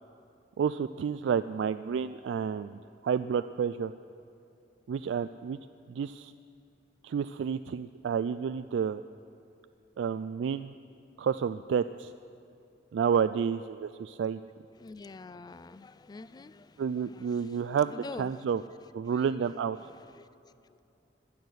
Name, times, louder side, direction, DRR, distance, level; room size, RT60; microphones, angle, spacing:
voice 1, 0.6-3.9 4.9-5.6 5.9-6.3 7.0-9.0 10.0-10.7 11.2-12.1 12.9-14.4 16.8-18.6 18.9-19.8, right 7 dB, 85° right, 11 dB, 0.3 m, -30 dB
voice 2, 14.8-18.4 19.1-20.3, left 3 dB, 20° left, 16 dB, 0.3 m, -47 dB
16.0 x 10.0 x 6.3 m, 2.7 s
head